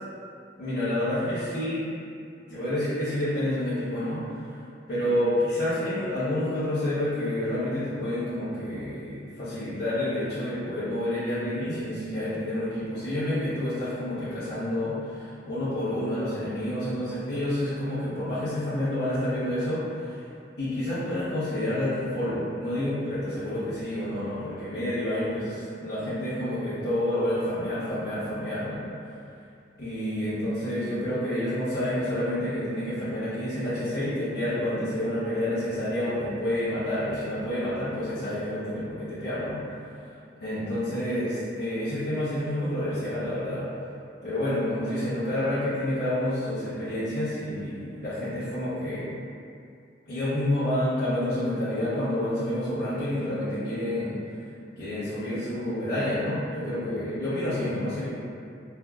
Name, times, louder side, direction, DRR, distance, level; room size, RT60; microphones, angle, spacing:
voice 1, 0.6-1.8 2.5-4.5 4.9-20.3 20.6-29.1 29.8-39.6 40.0-40.1 40.4-43.7 44.2-49.1 50.1-54.2 54.8-58.1, left 1 dB, 55° left, -13 dB, 0.8 m, -29 dB
4.5 x 2.2 x 2.3 m, 2.4 s
head